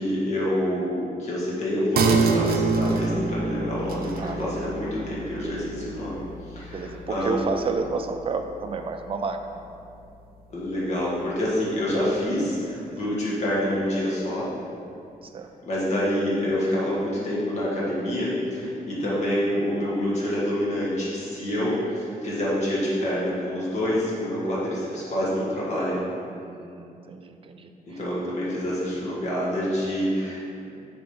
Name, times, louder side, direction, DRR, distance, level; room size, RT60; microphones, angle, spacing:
voice 1, 0.0-6.2 6.5-7.4 10.5-14.5 15.6-26.0 27.9-30.7, equal, 50° left, -7 dB, 1.6 m, -27 dB
sound 1, 2.0-9.0 9.3-9.4, right 4 dB, 90° right, 0.6 m, -27 dB
voice 2, 4.2-4.7 6.7-9.4 12.9-13.1 15.2-15.5 18.9-19.0 26.3-28.0, right 4 dB, 35° right, 6 dB, 0.4 m, -31 dB
6.9 x 3.9 x 5.2 m, 2.5 s
wide cardioid pair, 170°, 15 cm